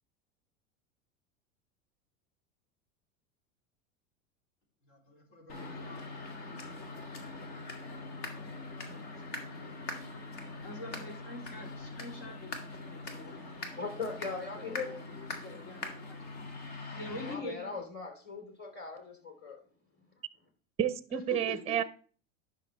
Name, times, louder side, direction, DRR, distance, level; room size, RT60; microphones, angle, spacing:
voice 1, 4.9-6.1 9.3-9.4 10.6-13.4 14.6-14.9 15.2-16.5 16.9-17.7 21.1-21.8, left 2 dB, 70° left, 3.4 m, -45 dB
sound 1, 5.5-17.3, left 3 dB, 55° left, 2.2 m, -42 dB
voice 2, 13.1-15.0 17.2-19.6, left 4 dB, 25° left, 3.2 m, -40 dB
voice 3, 20.8-21.8, right 10 dB, 15° right, 0.5 m, -30 dB
10.5 x 6.1 x 3.2 m
hypercardioid pair, 105°, 41 cm